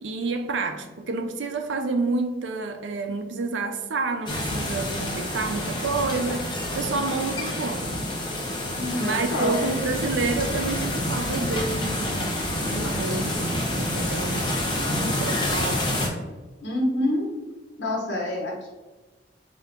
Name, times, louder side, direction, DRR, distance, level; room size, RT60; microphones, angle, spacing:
voice 1, 0.0-7.9 9.0-12.3 12.7-13.4 13.8-14.5 15.0-15.9, right 3 dB, 85° right, 0.4 m, -29 dB
sound 1, 4.3-16.1, left 1 dB, 25° left, 0.9 m, -28 dB
voice 2, 8.8-9.6 16.6-17.3 17.8-18.7, left 1 dB, 75° left, 0.9 m, -27 dB
3.8 x 2.8 x 3.4 m
head